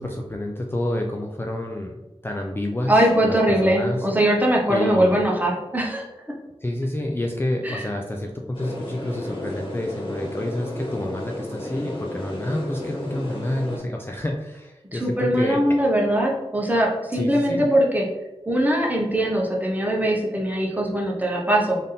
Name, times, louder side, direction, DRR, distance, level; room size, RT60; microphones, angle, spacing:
voice 1, 0.0-4.1 4.7-5.2 6.6-15.6 17.1-17.7, left 1 dB, 20° left, 1 dB, 0.4 m, -28 dB
voice 2, 2.9-6.0 7.6-7.8 14.9-18.1 18.5-21.8, right 1 dB, 15° right, -1 dB, 0.9 m, -21 dB
sound 1, 8.5-13.8, left 1 dB, 50° left, 1.4 m, -33 dB
3.5 x 2.7 x 3.9 m, 1.0 s
wide cardioid pair, 60°, 11 cm